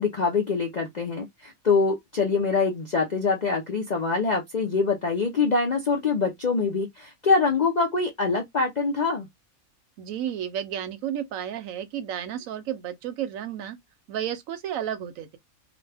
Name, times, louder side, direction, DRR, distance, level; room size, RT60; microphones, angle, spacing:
voice 1, 0.0-9.3, left 4 dB, 55° left, 0.4 m, -24 dB
voice 2, 10.0-13.8 14.1-15.4, right 10 dB, 75° right, 1.0 m, -32 dB
2.9 x 2.2 x 3.3 m
omnidirectional pair, 1.5 m